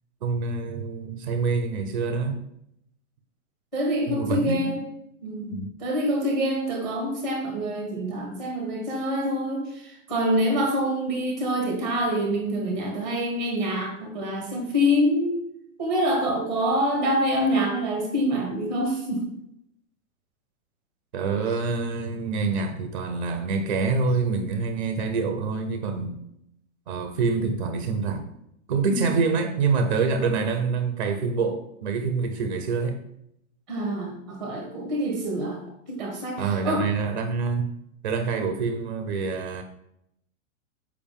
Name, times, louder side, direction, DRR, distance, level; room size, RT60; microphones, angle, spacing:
voice 1, 0.2-2.4 4.1-4.6 5.5-5.7 21.1-26.2 26.9-28.2 28.7-33.0 36.4-37.7 38.0-39.6, right 4 dB, 35° right, 6 dB, 0.5 m, -26 dB
voice 2, 3.7-4.8 5.2-5.5 5.8-15.4 15.8-19.3 28.9-29.1 33.7-35.6 35.9-36.8, equal, ahead, 1 dB, 0.8 m, -26 dB
7.0 x 4.8 x 3.5 m, 0.78 s
hypercardioid pair, 175°, 42 cm